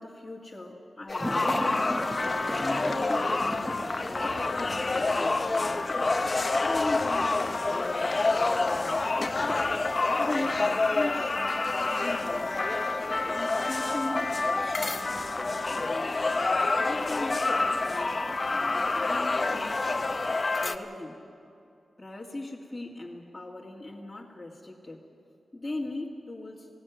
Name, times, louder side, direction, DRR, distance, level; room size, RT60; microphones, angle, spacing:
voice 1, 0.0-3.8 4.1-6.1 6.3-9.8 10.2-12.7 13.2-16.3 16.8-20.0 20.5-21.2 22.0-25.0 25.5-26.7, left 2 dB, 20° left, -3 dB, 2.1 m, -40 dB
sound 1, 1.1-20.8, left 3 dB, 35° left, 0.8 m, -28 dB
sound 2, 1.2-20.4, equal, ahead, 1.4 m, -40 dB
sound 3, 2.2-10.7, left 4 dB, 75° left, 1.5 m, -42 dB
19.0 x 17.0 x 9.2 m, 2.4 s
wide cardioid pair, 95°, 0 cm